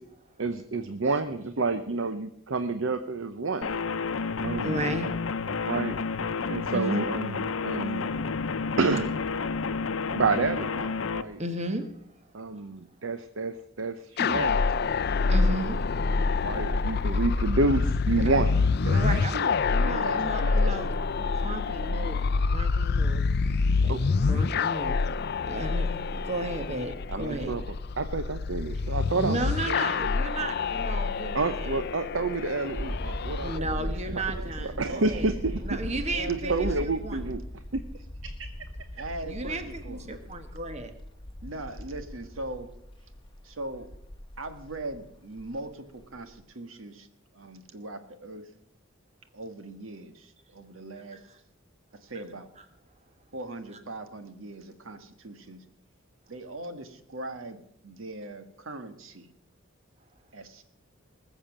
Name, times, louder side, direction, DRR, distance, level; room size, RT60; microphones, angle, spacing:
voice 1, 0.4-3.7 4.4-4.8 5.7-6.0 6.5-8.1 8.8-9.1 10.1-11.4 12.3-14.6 16.4-18.5 23.9-24.0 27.1-27.6 28.0-29.4 29.7-29.9 31.3-34.2 34.6-35.8 36.3-37.4 37.7-37.8 38.2-38.5, right 3 dB, 70° right, 0.8 m, -29 dB
sound 1, 3.6-11.2, left 4 dB, 90° left, 0.7 m, -30 dB
voice 2, 4.6-5.2 6.4-7.1 11.4-11.9 15.3-15.8 18.9-19.4 19.7-23.3 23.8-25.1 25.4-27.6 29.2-31.8 33.4-35.3 35.6-37.2 39.2-40.9, right 2 dB, 35° right, 1.4 m, -34 dB
sound 2, 14.2-33.6, left 4 dB, 55° left, 0.5 m, -27 dB
voice 3, 18.9-21.0 21.8-21.9 34.0-35.2 36.1-36.8 39.0-40.1 41.4-42.7 43.4-43.9 44.4-47.1 47.3-48.5 49.3-51.2 52.0-52.5 53.3-55.6 56.3-59.3 60.3-60.6, right 2 dB, 85° right, 1.5 m, -39 dB
sound 3, 32.7-45.6 46.0-46.2, left 1 dB, 25° left, 1.2 m, -38 dB
20.0 x 7.2 x 7.2 m
head